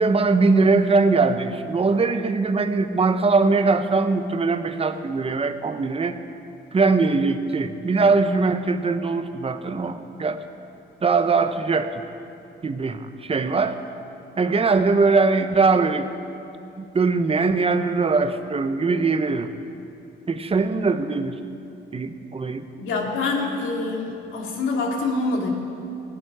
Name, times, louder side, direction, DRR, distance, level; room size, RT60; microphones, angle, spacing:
voice 1, 0.0-6.2 6.7-10.4 11.0-11.9 12.6-13.8 14.4-16.1 16.8-19.5 20.3-21.4 21.9-22.7, right 4 dB, 30° right, 9 dB, 0.9 m, -21 dB
voice 2, 22.8-25.5, left 3 dB, 80° left, 0 dB, 2.3 m, -25 dB
17.5 x 10.5 x 4.8 m, 2.7 s
cardioid pair, 90°, 20 cm